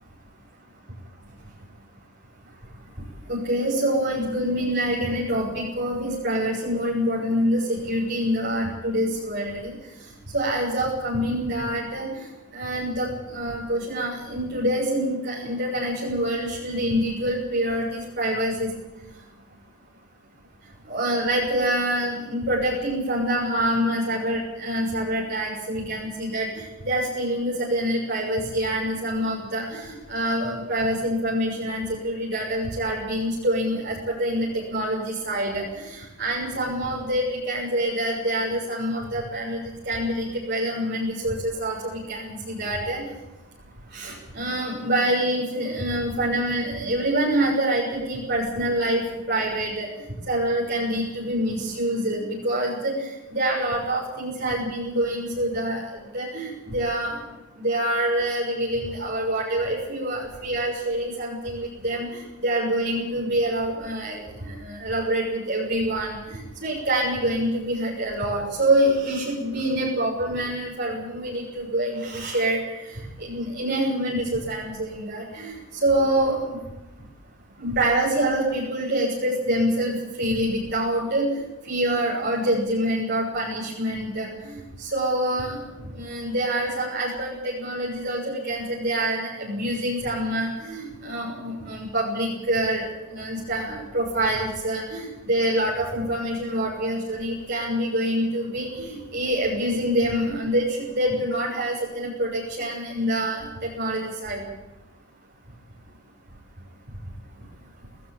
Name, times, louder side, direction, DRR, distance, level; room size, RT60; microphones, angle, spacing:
voice 1, 3.3-9.7 10.3-12.1 12.5-18.7 20.9-26.5 26.8-43.0 43.9-49.9 50.3-52.9 53.3-55.8 56.1-57.1 57.6-62.1 62.4-72.6 73.2-75.5 75.8-76.4 77.6-85.6 86.0-104.4, right 1 dB, 50° right, -4 dB, 6.4 m, -26 dB
19.5 x 18.0 x 8.7 m, 1.0 s
head